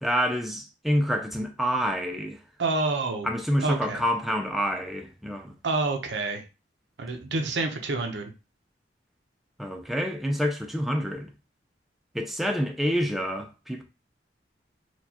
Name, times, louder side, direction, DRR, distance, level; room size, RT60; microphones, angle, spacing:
voice 1, 0.0-2.4 3.2-5.5 9.6-11.3 12.1-13.8, equal, ahead, 0.4 m, -27 dB
voice 2, 2.6-3.3 3.6-4.0 5.6-6.4 7.0-8.3, right 3 dB, 80° right, 0.7 m, -28 dB
4.4 x 2.3 x 2.8 m
head